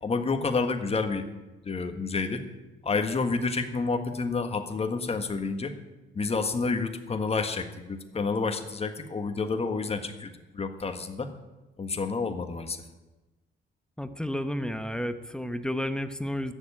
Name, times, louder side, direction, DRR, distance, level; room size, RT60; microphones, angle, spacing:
voice 1, 0.0-1.2 1.6-2.4 2.8-5.7 6.1-11.3 11.8-12.8, left 4 dB, 30° left, 7 dB, 1.6 m, -29 dB
voice 2, 14.0-16.5, equal, 5° left, 10 dB, 1.0 m, -31 dB
14.5 x 7.3 x 9.8 m, 1.1 s
cardioid pair, 90°, 20 cm